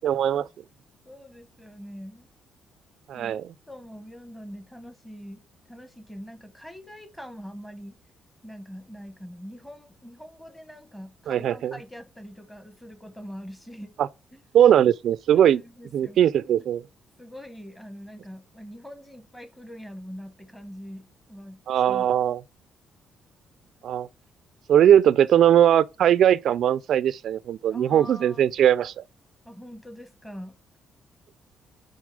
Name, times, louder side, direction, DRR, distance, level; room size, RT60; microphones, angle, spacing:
voice 1, 0.0-0.5 3.1-3.5 11.3-11.7 14.0-14.1 14.5-15.6 15.9-16.8 21.7-22.4 23.8-24.1 24.7-29.0, right 10 dB, 60° right, 0.4 m, -20 dB
voice 2, 1.0-2.3 3.1-3.4 3.7-5.4 5.7-8.0 8.4-13.9 14.3-14.4 15.3-16.2 17.2-22.1 27.7-28.5 29.4-30.6, equal, 5° left, 1.1 m, -43 dB
9.4 x 4.0 x 4.9 m
cardioid pair, 160°, 0 cm